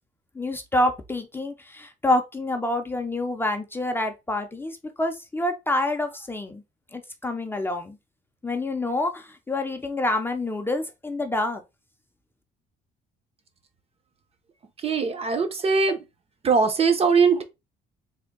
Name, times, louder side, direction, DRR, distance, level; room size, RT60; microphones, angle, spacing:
voice 1, 0.4-6.6 6.9-8.0 8.4-11.6, left 1 dB, 15° left, 0.6 m, -27 dB
voice 2, 14.8-16.0 16.4-17.4, right 5 dB, 35° right, 0.8 m, -21 dB
3.5 x 2.2 x 3.7 m
cardioid pair, 110°, 17 cm